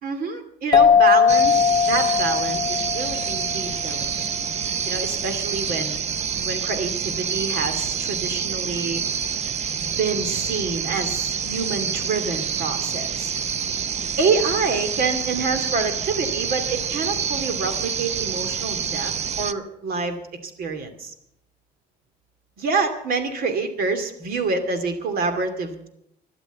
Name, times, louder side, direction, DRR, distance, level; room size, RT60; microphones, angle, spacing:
voice 1, 0.0-4.1 4.9-6.0 6.4-9.0 10.0-13.3 14.2-20.2 20.4-21.1 22.6-25.9, right 4 dB, 60° right, 9 dB, 2.6 m, -27 dB
sound 1, 0.7-4.0, left 7 dB, 25° left, 0.6 m, -19 dB
sound 2, 1.3-19.5, right 7 dB, 40° right, 0.7 m, -27 dB
13.0 x 11.5 x 8.3 m, 0.77 s
cardioid pair, 110°, 17 cm